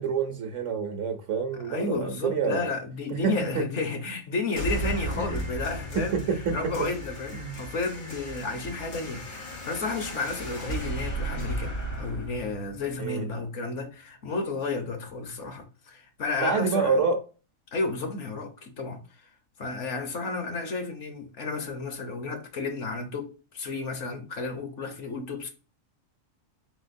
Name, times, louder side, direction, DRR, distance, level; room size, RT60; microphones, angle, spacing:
voice 1, 0.0-2.6 3.1-3.7 5.2-5.5 5.9-6.7 7.3-7.6 13.0-13.3 16.4-17.2, right 5 dB, 65° right, 1.0 m, -27 dB
voice 2, 1.7-6.2 6.5-17.0 17.7-19.0 19.6-25.5, left 3 dB, 65° left, 1.2 m, -32 dB
sound 1, 4.6-13.6, right 1 dB, 85° left, 1.8 m, -35 dB
4.3 x 4.2 x 2.6 m
omnidirectional pair, 1.4 m